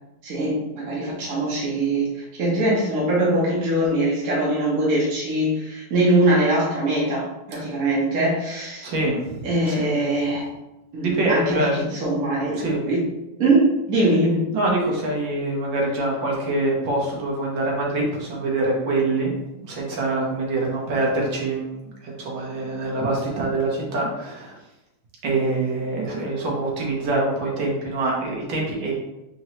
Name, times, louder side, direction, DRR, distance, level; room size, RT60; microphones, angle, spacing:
voice 1, 0.2-2.1 2.4-8.9 9.4-10.5 10.9-12.5 12.9-13.0 13.4-14.4, right 1 dB, 55° right, -6 dB, 1.2 m, -22 dB
voice 2, 8.8-10.0 11.0-11.9 12.5-12.8 14.5-21.7 22.0-24.6 25.2-28.9, right 2 dB, 85° right, -2 dB, 1.7 m, -25 dB
4.3 x 3.0 x 2.8 m, 0.97 s
omnidirectional pair, 2.0 m